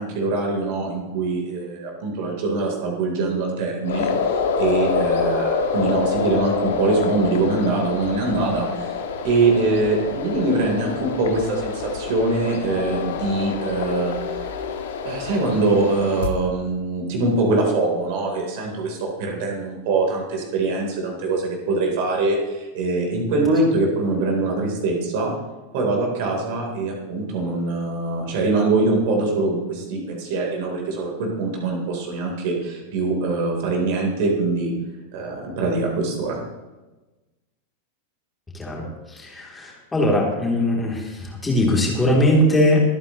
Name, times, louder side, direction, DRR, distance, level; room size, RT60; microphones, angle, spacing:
voice 1, 0.0-8.9 9.2-14.4 15.0-25.3 25.7-34.7 35.1-36.4, right 3 dB, 50° right, 1 dB, 3.7 m, -23 dB
sound 1, 3.8-16.3, left 5 dB, 60° left, 1.4 m, -27 dB
voice 2, 39.1-42.8, left 1 dB, 10° left, -2 dB, 3.2 m, -20 dB
24.0 x 9.5 x 3.1 m, 1.1 s
figure-of-eight pair, 90°, 0 cm